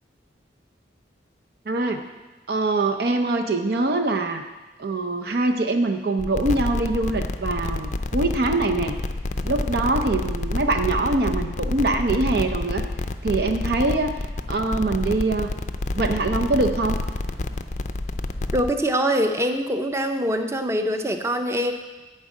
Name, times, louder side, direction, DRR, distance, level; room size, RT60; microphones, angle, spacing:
voice 1, 1.7-2.0 2.5-4.4 4.8-9.0 9.4-12.8 13.2-14.2 14.5-15.5 16.0-17.0, right 2 dB, 60° right, 6 dB, 0.6 m, -23 dB
sound 1, 6.2-18.7, left 2 dB, 40° left, 0.5 m, -28 dB
voice 2, 18.5-21.7, equal, 15° right, 6 dB, 0.7 m, -23 dB
11.0 x 5.3 x 8.3 m, 1.2 s
head